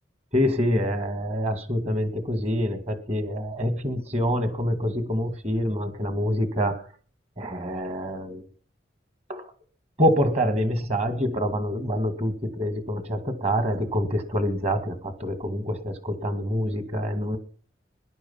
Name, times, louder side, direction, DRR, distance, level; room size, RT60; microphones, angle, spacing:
voice 1, 0.3-6.9 7.4-8.4 9.3-9.4 10.0-17.4, equal, 35° right, 9 dB, 2.0 m, -26 dB
19.5 x 11.0 x 5.6 m, 0.44 s
head